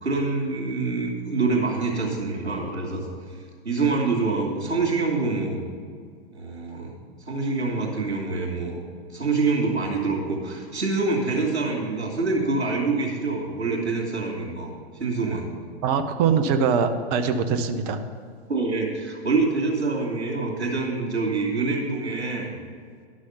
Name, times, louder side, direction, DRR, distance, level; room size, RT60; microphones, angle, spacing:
voice 1, 0.0-3.1 3.6-5.6 6.3-6.9 7.3-8.8 9.1-14.7 15.0-15.5 18.5-22.5, right 3 dB, 80° right, -6 dB, 2.4 m, -25 dB
voice 2, 15.8-18.0, right 6 dB, 40° right, 8 dB, 0.9 m, -22 dB
11.5 x 6.4 x 5.7 m, 2.1 s
figure-of-eight pair, 105°, 32 cm